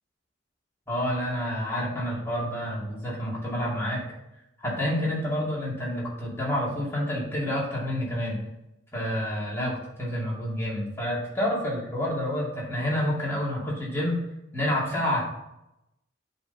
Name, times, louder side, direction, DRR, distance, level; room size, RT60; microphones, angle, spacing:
voice 1, 0.9-4.0 4.6-8.4 8.9-14.2 14.5-15.3, left 1 dB, 15° left, -5 dB, 2.4 m, -28 dB
7.7 x 4.4 x 5.4 m, 0.87 s
head